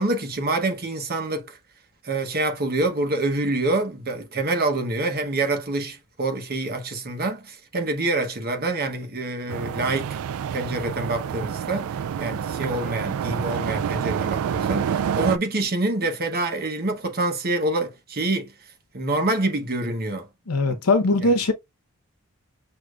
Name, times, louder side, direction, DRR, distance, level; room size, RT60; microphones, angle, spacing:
voice 1, 0.0-1.6 2.0-10.2 10.5-18.5 18.9-20.3 20.7-20.8 21.2-21.3, right 2 dB, 45° right, 1.0 m, -26 dB
sound 1, 9.5-15.4, right 8 dB, 70° right, 0.3 m, -28 dB
voice 2, 20.5-21.5, left 2 dB, 85° left, 0.9 m, -20 dB
6.4 x 2.7 x 2.4 m
head